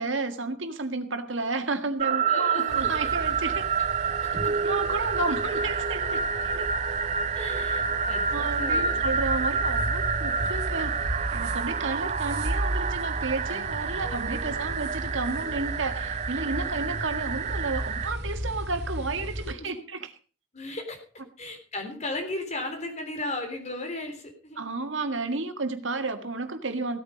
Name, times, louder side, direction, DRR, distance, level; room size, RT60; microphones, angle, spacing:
voice 1, 0.0-3.7 4.2-6.7 8.3-20.1 24.6-27.0, right 3 dB, 75° right, 7 dB, 1.8 m, -32 dB
sound 1, 2.0-18.1, right 6 dB, 35° right, 0.5 m, -28 dB
voice 2, 2.3-3.1 4.4-4.5 7.3-9.0 13.5-13.6 14.0-14.6 16.5-16.9 19.6-19.8 20.5-21.0 21.4-24.7, left 2 dB, 35° left, 4 dB, 3.4 m, -36 dB
sound 2, 2.7-19.5, equal, 55° right, 2.6 m, -35 dB
16.5 x 9.0 x 5.2 m, 0.38 s
head